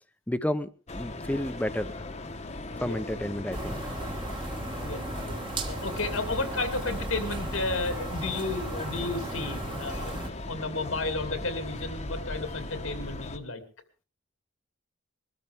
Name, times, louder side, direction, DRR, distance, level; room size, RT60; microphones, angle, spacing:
voice 1, 0.3-1.9 2.8-3.8, left 1 dB, 5° left, 12 dB, 0.7 m, -31 dB
sound 1, 0.9-13.4, left 2 dB, 35° left, 1.1 m, -39 dB
voice 2, 2.8-3.2 4.8-13.6, left 3 dB, 85° left, 7 dB, 2.6 m, -33 dB
sound 2, 3.5-10.3, right 1 dB, 25° right, 1.3 m, -36 dB
22.0 x 13.5 x 3.5 m, 0.36 s
head